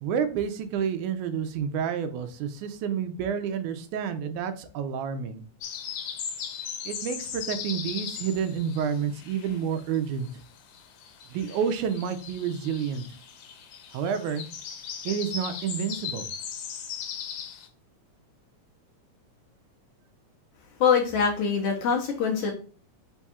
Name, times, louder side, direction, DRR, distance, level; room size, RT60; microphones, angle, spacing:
voice 1, 0.0-5.4 6.9-10.3 11.3-13.1 13.9-14.5 15.1-16.3, right 7 dB, 90° right, 9 dB, 2.1 m, -29 dB
sound 1, 5.6-10.0 10.2-17.7, left 7 dB, 90° left, 2.2 m, -38 dB
voice 2, 20.8-22.5, left 6 dB, 70° left, 0 dB, 1.6 m, -23 dB
5.2 x 2.4 x 4.1 m, 0.40 s
omnidirectional pair, 3.4 m